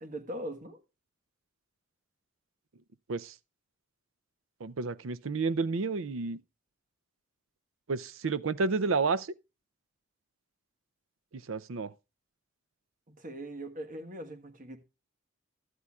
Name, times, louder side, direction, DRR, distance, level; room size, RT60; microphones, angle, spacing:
voice 1, 0.0-0.8 13.2-14.8, right 1 dB, 40° right, 1.4 m, -40 dB
voice 2, 4.6-6.4 7.9-9.3 11.3-11.9, right 4 dB, 75° right, 0.5 m, -30 dB
12.5 x 12.5 x 2.4 m
head